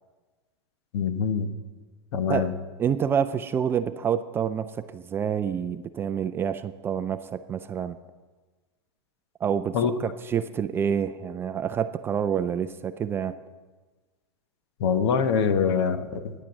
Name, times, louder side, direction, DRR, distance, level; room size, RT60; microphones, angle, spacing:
voice 1, 0.9-1.5 2.1-2.5 9.7-9.9 14.8-16.4, left 6 dB, 65° left, 10 dB, 1.1 m, -24 dB
voice 2, 2.8-8.0 9.4-13.4, right 8 dB, 15° right, 11 dB, 0.3 m, -28 dB
12.5 x 10.0 x 7.3 m, 1.3 s
supercardioid pair, 150°, 14 cm